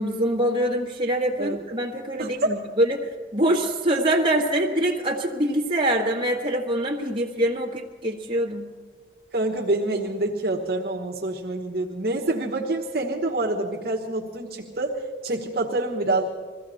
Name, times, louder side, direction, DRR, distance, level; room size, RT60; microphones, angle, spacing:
voice 1, 0.0-8.7, right 1 dB, 30° right, -1 dB, 1.6 m, -24 dB
voice 2, 2.2-2.6 9.3-16.3, right 2 dB, 60° right, -2 dB, 1.2 m, -26 dB
22.0 x 15.0 x 4.2 m, 1.5 s
head